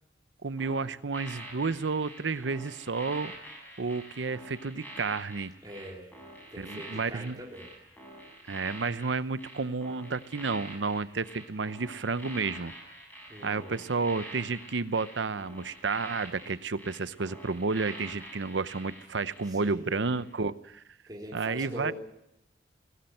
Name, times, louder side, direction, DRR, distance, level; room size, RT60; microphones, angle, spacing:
voice 1, 0.4-3.3 3.8-5.5 6.6-7.4 8.5-12.7 13.4-20.8 21.3-21.9, right 4 dB, 90° right, 15 dB, 0.8 m, -31 dB
sound 1, 0.6-19.7 20.1-20.3, right 1 dB, 10° left, 7.2 m, -46 dB
voice 2, 5.6-6.1 6.5-7.7 13.3-13.8 19.5-20.0 21.1-21.9, equal, 20° right, -3 dB, 3.9 m, -42 dB
20.5 x 16.5 x 7.8 m, 0.83 s
head